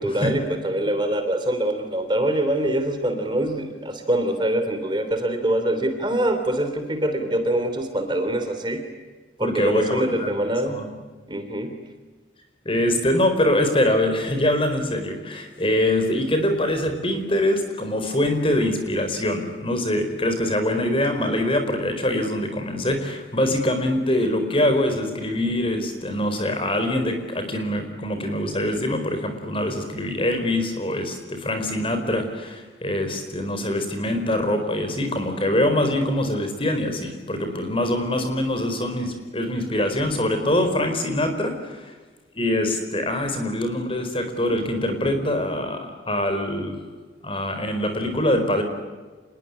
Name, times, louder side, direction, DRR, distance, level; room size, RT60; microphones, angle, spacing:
voice 1, 0.0-8.8 9.4-10.8 11.3-11.7, right 1 dB, 25° right, 7 dB, 3.2 m, -24 dB
voice 2, 9.4-10.3 10.7-10.9 12.6-41.9 42.3-46.8 47.2-48.6, left 1 dB, 30° left, 7 dB, 4.5 m, -24 dB
27.0 x 21.5 x 9.8 m, 1.3 s
head